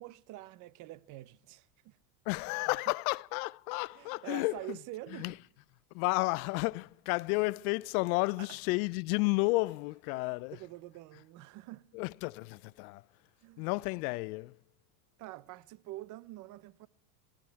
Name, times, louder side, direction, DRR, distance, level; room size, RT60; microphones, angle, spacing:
voice 1, 0.0-2.0 2.7-2.8 3.9-5.4 8.4-8.6 10.1-11.9 13.4-13.7 15.2-16.9, right 17 dB, 40° right, 0.6 m, -46 dB
voice 2, 2.3-4.8 5.2-5.3 5.9-10.6 11.9-13.0 13.6-14.6, left 25 dB, 65° left, 0.5 m, -32 dB
20.5 x 15.0 x 4.6 m
supercardioid pair, 130°, 48 cm